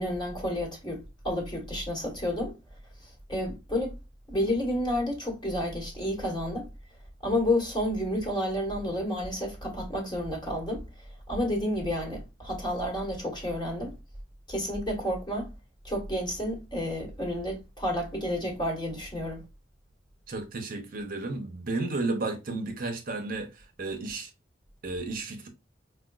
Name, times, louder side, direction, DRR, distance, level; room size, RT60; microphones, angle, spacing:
voice 1, 0.0-2.5 3.3-3.9 4.3-6.7 7.2-10.8 11.3-13.9 14.5-15.5 15.8-19.4, left 1 dB, 25° left, 1.4 m, -30 dB
voice 2, 20.3-24.3 24.8-25.5, right 3 dB, 50° right, 0.7 m, -33 dB
4.9 x 2.2 x 2.3 m
head